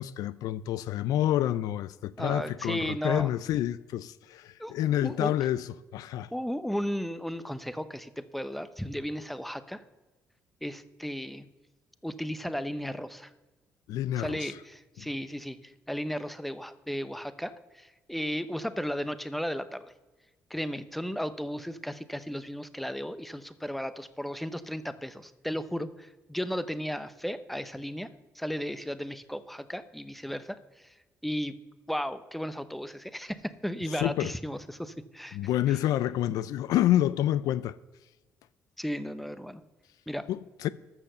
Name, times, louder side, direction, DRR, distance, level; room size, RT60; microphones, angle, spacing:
voice 1, 0.0-6.3 13.9-14.5 15.0-15.1 34.0-34.3 35.3-37.8 40.3-40.7, left 12 dB, 80° left, 0.4 m, -28 dB
voice 2, 2.2-3.3 4.6-5.4 6.3-9.8 10.6-11.5 12.0-13.3 14.2-19.9 20.5-28.1 28.3-30.9 31.2-31.5 31.9-35.4 35.7-35.8 38.8-39.6 40.1-40.3, equal, ahead, 0.8 m, -35 dB
13.5 x 5.8 x 6.7 m
supercardioid pair, 75°, 6 cm